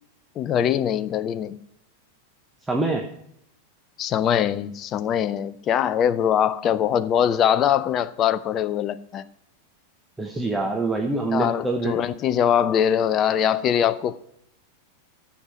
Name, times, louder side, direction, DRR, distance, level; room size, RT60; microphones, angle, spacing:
voice 1, 0.4-1.6 4.0-9.2 11.3-14.2, left 9 dB, 30° left, 0.4 m, -22 dB
voice 2, 2.7-3.1 10.2-12.0, right 3 dB, 10° right, 1.0 m, -25 dB
13.0 x 7.2 x 4.3 m
figure-of-eight pair, 90°, 0 cm